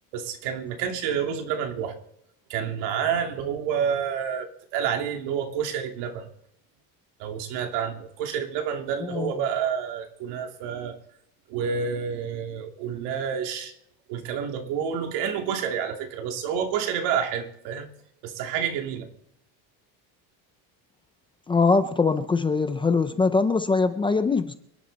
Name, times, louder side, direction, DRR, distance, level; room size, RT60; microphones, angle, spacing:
voice 1, 0.1-2.0 2.5-6.3 7.2-11.0 11.5-13.7 14.1-17.9 18.2-19.1, right 7 dB, 80° right, 4 dB, 2.8 m, -29 dB
voice 2, 21.5-24.6, left 4 dB, 10° left, 9 dB, 0.5 m, -22 dB
26.5 x 11.0 x 4.1 m, 0.72 s
cardioid pair, 175°, 41 cm